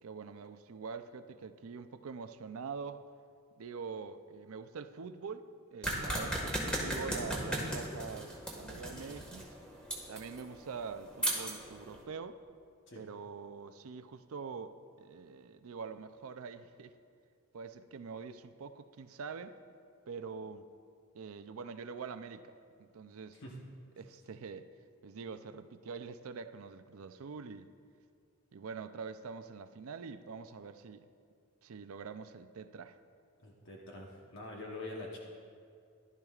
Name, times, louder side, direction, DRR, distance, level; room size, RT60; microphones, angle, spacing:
voice 1, 0.0-3.0 3.6-9.6 10.1-12.4 13.0-16.9 17.5-19.6 20.1-20.7 21.1-23.4 24.0-24.7 25.0-27.7 28.5-31.1 31.6-33.0, right 5 dB, 65° right, 11 dB, 0.4 m, -45 dB
sound 1, 5.8-12.0, right 1 dB, 5° left, 1.6 m, -37 dB
voice 2, 33.4-35.2, left 2 dB, 55° left, -2 dB, 1.0 m, -45 dB
15.0 x 12.0 x 2.4 m, 2.3 s
head